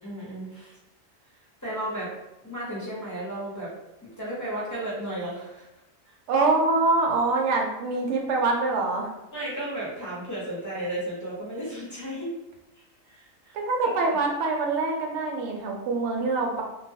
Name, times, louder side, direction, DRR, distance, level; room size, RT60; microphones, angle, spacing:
voice 1, 0.0-0.8 1.6-2.1 2.4-3.7 4.2-5.7 6.0-6.1 9.3-12.3 13.1-13.5, right 1 dB, 20° left, -7 dB, 0.5 m, -34 dB
voice 2, 6.3-9.1 13.5-16.6, right 3 dB, 65° right, 0 dB, 0.8 m, -24 dB
2.2 x 2.1 x 2.6 m, 0.95 s
omnidirectional pair, 1.4 m